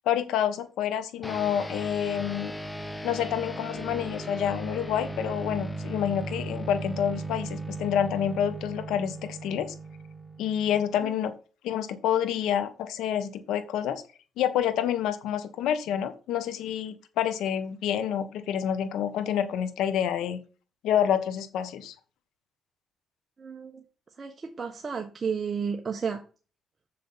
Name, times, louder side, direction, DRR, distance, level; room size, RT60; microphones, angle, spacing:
voice 1, 0.0-2.5 3.0-9.7 10.4-11.3 11.6-14.0 14.4-20.4 20.8-21.9, left 9 dB, 85° left, 1.5 m, -28 dB
sound 1, 1.2-11.0, right 2 dB, 10° left, 1.1 m, -37 dB
voice 2, 23.4-23.8 24.2-26.2, right 6 dB, 35° right, 1.3 m, -32 dB
7.1 x 6.6 x 5.7 m
cardioid pair, 90°, 0 cm